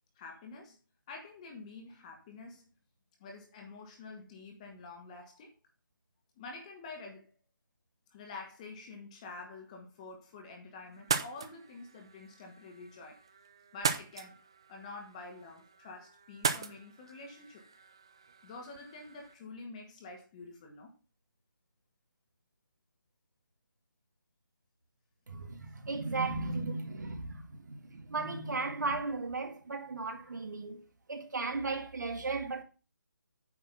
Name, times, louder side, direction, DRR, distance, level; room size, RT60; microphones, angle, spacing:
voice 1, 0.2-0.8 1.1-2.6 3.2-5.5 6.4-7.3 8.1-13.2 13.7-14.4 14.7-17.6 18.4-20.9, left 3 dB, 20° left, 1.9 m, -48 dB
sound 1, 10.9-19.3, right 5 dB, 15° right, 0.3 m, -39 dB
voice 2, 25.3-30.8 31.1-32.6, right 3 dB, 60° right, 1.9 m, -36 dB
9.3 x 4.6 x 5.6 m
figure-of-eight pair, 165°, 11 cm